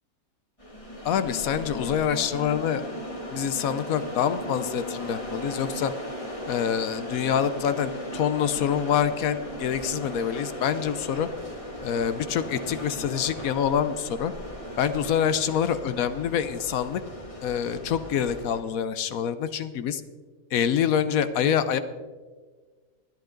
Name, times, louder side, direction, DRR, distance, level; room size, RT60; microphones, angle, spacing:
sound 1, 0.6-18.6, equal, 20° left, 2.0 m, -37 dB
voice 1, 1.0-2.8 3.3-5.9 6.5-11.3 11.8-14.3 14.8-17.0 17.4-20.0 20.5-21.8, left 8 dB, 75° left, 12 dB, 1.1 m, -26 dB
19.5 x 10.5 x 3.8 m, 1.4 s
omnidirectional pair, 1.5 m